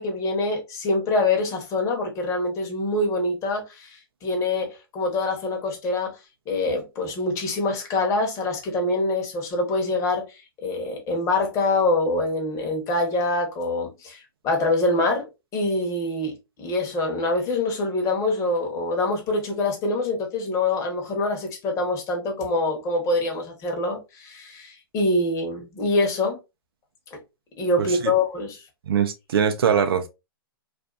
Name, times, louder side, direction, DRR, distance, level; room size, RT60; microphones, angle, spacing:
voice 1, 0.0-6.1 6.5-26.4 27.6-28.6, left 2 dB, 25° left, 0.9 m, -25 dB
voice 2, 27.8-28.1 28.9-30.1, right 7 dB, 80° right, 0.5 m, -22 dB
2.5 x 2.4 x 2.3 m
hypercardioid pair, 135°, 12 cm